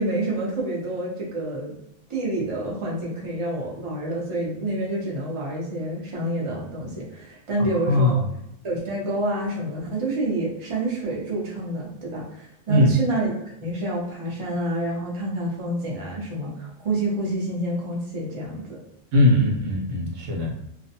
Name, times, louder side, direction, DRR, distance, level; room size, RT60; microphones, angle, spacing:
voice 1, 0.0-1.7 2.1-8.2 8.6-18.8, right 1 dB, 30° right, -4 dB, 0.7 m, -28 dB
voice 2, 7.7-8.2 12.7-12.9 19.1-20.5, left 1 dB, 80° right, 0 dB, 1.0 m, -20 dB
2.5 x 2.2 x 2.7 m, 0.80 s
omnidirectional pair, 1.3 m